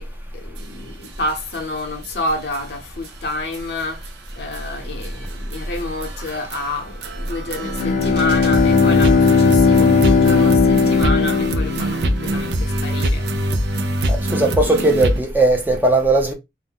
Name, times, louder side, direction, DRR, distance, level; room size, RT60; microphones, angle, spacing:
voice 1, 0.0-13.3 13.6-13.8, left 2 dB, 65° left, 0.8 m, -29 dB
sound 1, 0.6-0.7 1.0-1.1 1.5-1.6 2.0-2.1 2.5-2.6 3.0-3.1 3.5-15.2, right 1 dB, 70° right, 0.4 m, -24 dB
Bowed string instrument, 7.6-12.4, left 5 dB, 45° left, 0.3 m, -16 dB
voice 2, 14.1-16.3, right 2 dB, 10° right, 0.5 m, -17 dB
2.5 x 2.1 x 3.4 m
head